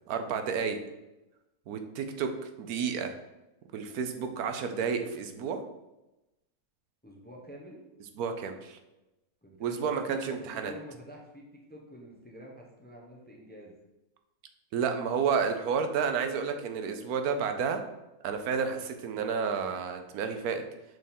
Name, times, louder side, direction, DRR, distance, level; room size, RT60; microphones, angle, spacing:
voice 1, 0.1-0.8 1.7-3.1 3.7-5.6 8.2-8.8 9.6-10.7 14.7-17.8 18.2-20.6, right 6 dB, 90° right, 6 dB, 1.2 m, -31 dB
voice 2, 7.0-7.8 9.4-13.7, equal, 10° left, -1 dB, 0.6 m, -47 dB
6.3 x 3.7 x 4.3 m, 0.98 s
omnidirectional pair, 1.5 m